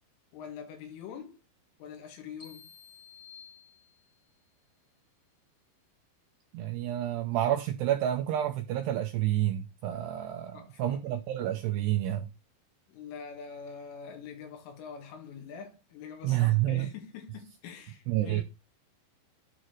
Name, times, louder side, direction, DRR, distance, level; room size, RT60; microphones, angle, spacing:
voice 1, 0.3-1.4 1.8-2.7 10.5-11.0 12.9-18.4, left 6 dB, 90° left, 4.5 m, -44 dB
sound 1, 2.4-4.3, left 6 dB, 30° left, 1.6 m, -53 dB
voice 2, 6.5-12.3 16.2-16.9 18.1-18.4, right 13 dB, 90° right, 2.4 m, -29 dB
11.0 x 3.8 x 4.5 m
omnidirectional pair, 5.6 m